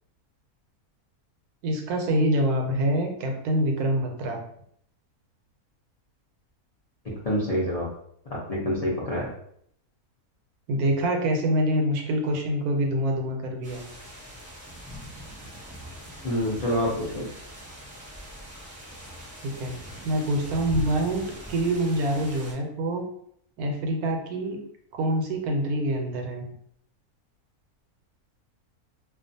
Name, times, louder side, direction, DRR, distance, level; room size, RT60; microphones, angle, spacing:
voice 1, 1.6-4.4 10.7-13.8 19.4-21.2 21.5-23.1 23.6-24.6 24.9-26.4, right 1 dB, 80° right, 3 dB, 1.1 m, -25 dB
voice 2, 7.0-7.9 8.3-9.3 16.2-17.3, equal, 90° left, -7 dB, 0.3 m, -27 dB
sound 1, 13.6-22.5, right 1 dB, 5° right, 0.9 m, -41 dB
2.4 x 2.4 x 2.6 m, 0.68 s
omnidirectional pair, 1.6 m